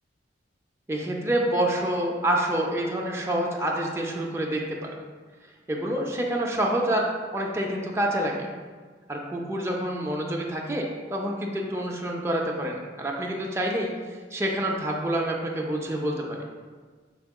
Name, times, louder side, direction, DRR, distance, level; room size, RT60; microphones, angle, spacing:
voice 1, 0.9-4.9 5.7-7.1 7.3-8.5 9.1-13.9 14.3-16.4, right 1 dB, 15° right, -1 dB, 0.4 m, -27 dB
4.6 x 3.5 x 2.3 m, 1.5 s
head